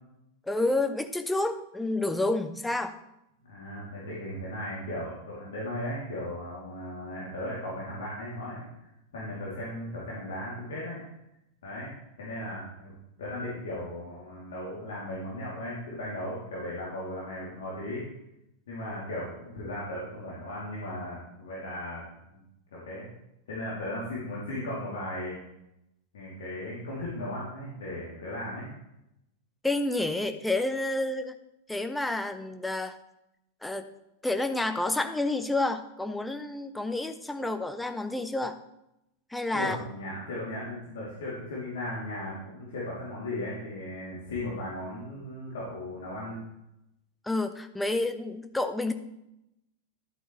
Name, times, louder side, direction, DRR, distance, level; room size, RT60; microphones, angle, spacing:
voice 1, 0.5-2.9 29.6-31.4 31.7-33.0 33.6-33.9 34.2-38.6 39.3-39.8 47.2-48.9, left 2 dB, 5° left, 9 dB, 0.7 m, -29 dB
voice 2, 3.5-8.7 9.1-11.0 11.6-11.9 12.2-12.9 13.2-18.0 18.7-22.0 22.3-22.4 22.7-23.0 23.5-25.4 26.1-28.7 39.5-46.4, left 1 dB, 60° left, -6 dB, 2.7 m, -36 dB
12.5 x 7.9 x 3.1 m, 0.88 s
figure-of-eight pair, 90°, 0 cm